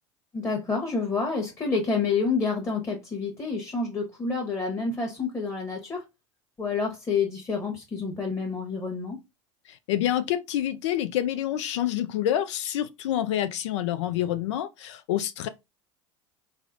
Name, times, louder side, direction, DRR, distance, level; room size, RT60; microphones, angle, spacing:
voice 1, 0.3-6.0 6.6-9.2, left 4 dB, 15° left, 1.0 m, -28 dB
voice 2, 9.7-15.5, left 12 dB, 70° left, 0.4 m, -27 dB
4.7 x 2.0 x 2.5 m
hypercardioid pair, 75°, 16 cm